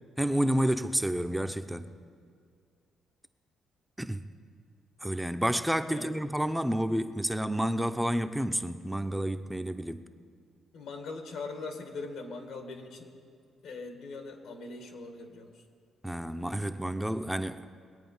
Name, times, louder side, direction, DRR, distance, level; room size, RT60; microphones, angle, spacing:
voice 1, 0.2-1.9 4.0-4.2 5.0-10.1 16.0-17.7, equal, 5° right, 0.6 m, -30 dB
voice 2, 10.7-13.1 13.6-15.6, left 3 dB, 80° left, 1.8 m, -41 dB
21.0 x 8.6 x 5.5 m
cardioid pair, 90°, 0 cm